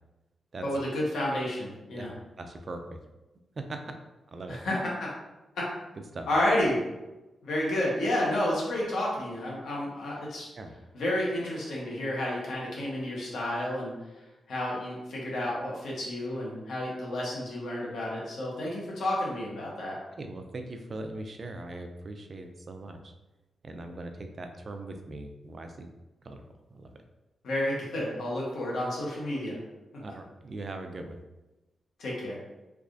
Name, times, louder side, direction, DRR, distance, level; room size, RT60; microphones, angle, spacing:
voice 1, 0.6-2.1 4.5-5.1 5.5-5.6 6.3-6.8 7.4-10.5 10.9-13.9 14.5-20.0 27.4-29.6 32.0-32.4, left 1 dB, 85° left, -4 dB, 1.1 m, -30 dB
voice 2, 2.4-2.8 3.6-3.8 4.3-4.6 6.1-6.2 10.6-10.7 20.2-23.0 23.6-25.9 26.3-26.4 26.8-26.9 30.0-31.2, right 2 dB, 40° right, 5 dB, 0.4 m, -40 dB
3.4 x 3.1 x 2.5 m, 1.0 s
wide cardioid pair, 125°, 0 cm